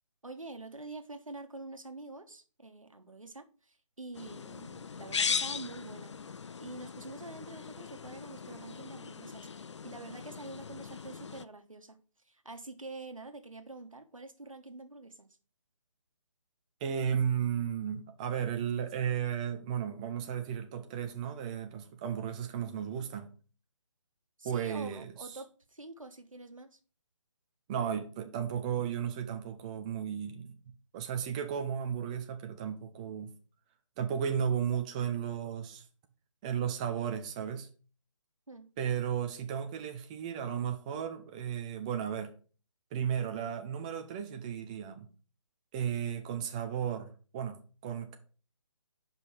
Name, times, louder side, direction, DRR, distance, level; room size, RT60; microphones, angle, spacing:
voice 1, 0.2-6.1 6.6-12.0 12.2-15.3 24.4-26.8 38.5-38.7, right 2 dB, 85° right, 1.3 m, -46 dB
sound 1, 4.1-11.5, left 6 dB, 60° left, 0.5 m, -39 dB
voice 2, 16.8-23.3 24.4-25.3 27.7-30.5 30.9-33.3 34.0-35.9 36.4-37.7 38.8-42.3 42.9-45.1 45.7-47.1 47.3-47.6 47.8-48.2, right 8 dB, 15° right, 0.4 m, -34 dB
5.4 x 5.2 x 6.0 m
figure-of-eight pair, 145°, 17 cm